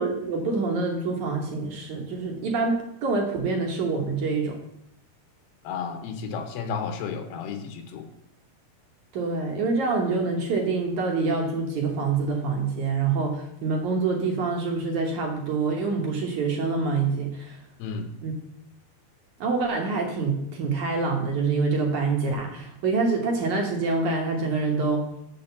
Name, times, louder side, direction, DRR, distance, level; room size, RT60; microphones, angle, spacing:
voice 1, 0.0-4.6 9.1-17.6 18.2-18.3 19.4-25.0, right 4 dB, 65° right, 1 dB, 2.1 m, -26 dB
voice 2, 5.6-8.1 17.8-18.2, left 5 dB, 80° left, 7 dB, 2.8 m, -32 dB
6.8 x 6.2 x 7.0 m, 0.79 s
omnidirectional pair, 4.5 m